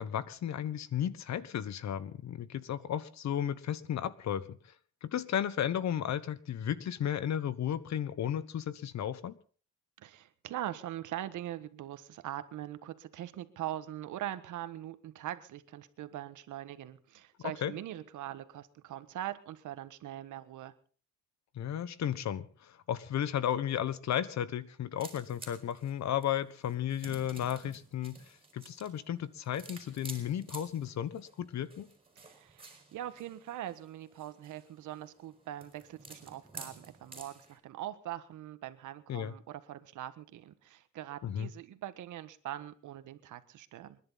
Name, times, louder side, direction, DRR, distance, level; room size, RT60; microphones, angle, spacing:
voice 1, 0.0-4.6 5.0-9.4 17.6-17.7 21.5-28.2 28.5-31.9 39.1-39.3 41.2-41.5, left 10 dB, 65° left, 16 dB, 1.3 m, -34 dB
voice 2, 10.0-20.7 32.1-44.0, right 13 dB, 80° right, 12 dB, 1.5 m, -42 dB
sound 1, 25.0-37.6, right 3 dB, 20° right, 5.2 m, -52 dB
28.5 x 11.0 x 4.1 m, 0.41 s
cardioid pair, 90°, 30 cm